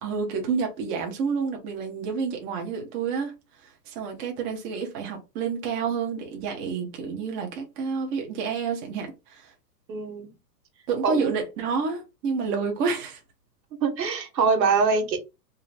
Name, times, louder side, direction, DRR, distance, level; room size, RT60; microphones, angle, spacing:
voice 1, 0.0-3.3 3.6-9.5 10.9-13.2, right 5 dB, 25° right, 1.0 m, -29 dB
voice 2, 9.9-10.3 11.0-11.3 13.8-15.2, right 5 dB, 85° right, 1.4 m, -23 dB
3.8 x 2.2 x 4.2 m
hypercardioid pair, 145°, 50 cm